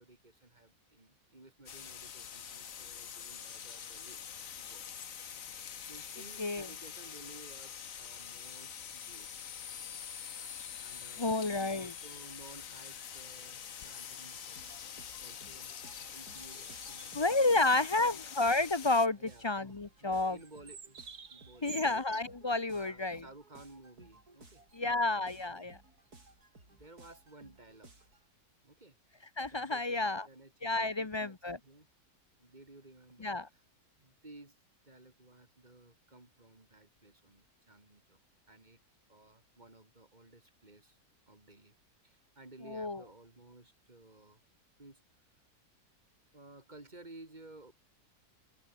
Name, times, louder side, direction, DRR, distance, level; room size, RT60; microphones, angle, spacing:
voice 1, 0.0-4.2 4.6-5.0 5.9-9.3 10.8-11.4 11.7-14.8 15.2-18.2 19.2-19.6 20.0-21.0 21.3-22.1 22.7-25.7 26.7-28.1 28.6-29.0 29.5-31.9 32.4-33.6 34.0-34.6 34.8-38.2 38.5-38.8 39.1-41.0 41.3-41.8 42.0-44.4 44.8-45.0 46.3-47.7, right 2 dB, 30° right, 3.7 m, -56 dB
sound 1, 1.7-19.1, left 8 dB, 60° left, 1.6 m, -45 dB
voice 2, 11.2-11.9 17.1-20.4 21.6-23.2 24.7-25.8 29.4-30.3 30.6-31.6 33.2-33.5 42.7-43.0, left 2 dB, 30° left, 0.5 m, -30 dB
sound 2, 14.6-28.3, right 3 dB, 80° right, 5.1 m, -59 dB
sound 3, 15.9-17.3 17.7-17.9 18.2-18.8 20.3-22.2, right 6 dB, 55° right, 2.1 m, -51 dB
omnidirectional pair, 1.6 m